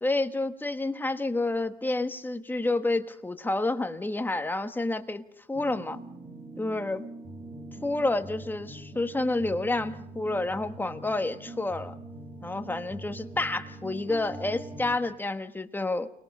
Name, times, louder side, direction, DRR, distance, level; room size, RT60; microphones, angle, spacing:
voice 1, 0.0-5.2 5.5-6.0 6.6-7.0 7.8-11.9 12.4-16.1, left 2 dB, 10° left, 8 dB, 1.4 m, -29 dB
sound 1, 5.5-15.0, right 2 dB, 30° right, 2.8 m, -43 dB
29.5 x 21.0 x 5.5 m, 0.71 s
cardioid pair, 110°, 17 cm